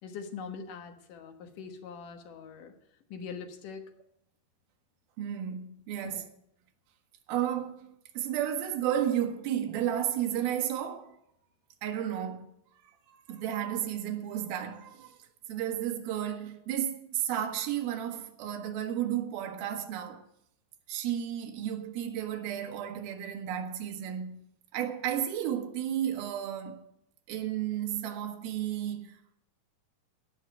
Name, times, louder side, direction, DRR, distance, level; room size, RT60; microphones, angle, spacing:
voice 1, 0.0-2.7 3.1-3.9 6.0-6.2, left 6 dB, 65° left, 2.6 m, -42 dB
voice 2, 5.2-6.3 7.3-11.2 11.8-12.5 13.1-15.2 15.5-20.2 20.9-24.5 24.7-26.8 27.3-29.3, right 10 dB, 70° right, 3.1 m, -33 dB
17.5 x 5.8 x 8.2 m
omnidirectional pair, 4.6 m